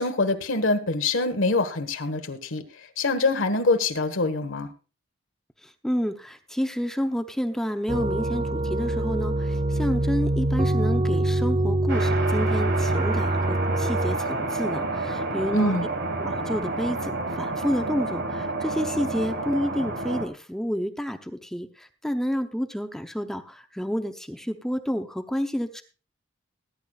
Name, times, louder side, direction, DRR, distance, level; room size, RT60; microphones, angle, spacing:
voice 1, 0.0-2.6 3.0-4.7 15.5-15.9, left 2 dB, 85° left, 8 dB, 1.4 m, -24 dB
voice 2, 5.6-15.8 16.2-25.8, equal, 5° left, 7 dB, 0.7 m, -29 dB
sound 1, 7.9-14.2, right 1 dB, 30° right, 0.6 m, -24 dB
sound 2, 11.9-20.3, right 2 dB, 60° right, 1.7 m, -29 dB
19.0 x 10.5 x 2.4 m, 0.35 s
head